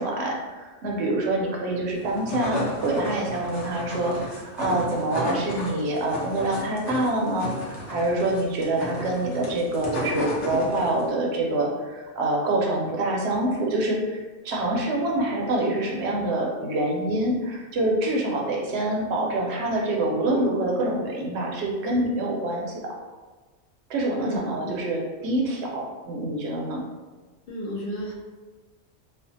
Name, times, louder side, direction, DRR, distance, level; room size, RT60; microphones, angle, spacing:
voice 1, 0.0-22.9 23.9-26.8, right 1 dB, 70° right, -1 dB, 0.8 m, -26 dB
sound 1, 2.0-11.1, left 1 dB, 75° left, 1.0 m, -33 dB
voice 2, 24.2-24.7 27.5-28.1, equal, 60° left, -4 dB, 0.7 m, -32 dB
2.5 x 2.4 x 2.6 m, 1.3 s
omnidirectional pair, 1.2 m